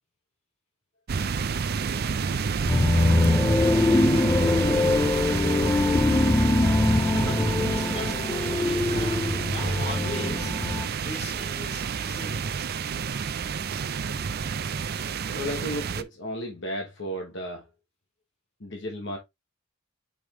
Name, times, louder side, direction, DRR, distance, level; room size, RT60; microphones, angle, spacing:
sound 1, 1.1-16.0, right 6 dB, 50° right, 0.5 m, -29 dB
sound 2, 2.7-10.9, left 2 dB, 15° left, 0.4 m, -23 dB
voice 1, 7.1-10.5 11.0-12.5, left 2 dB, 30° left, 3.2 m, -38 dB
voice 2, 15.3-17.7 18.6-19.2, equal, 60° left, 1.2 m, -33 dB
5.1 x 5.1 x 3.7 m
head